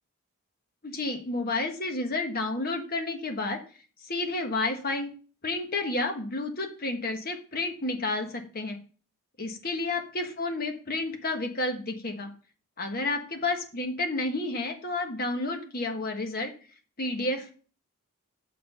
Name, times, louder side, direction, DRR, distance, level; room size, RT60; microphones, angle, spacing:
voice 1, 0.8-3.6 4.0-5.1 5.4-8.8 9.4-12.3 12.8-16.5 17.0-17.5, left 2 dB, 40° left, 4 dB, 1.3 m, -30 dB
6.8 x 5.3 x 5.4 m, 0.39 s
head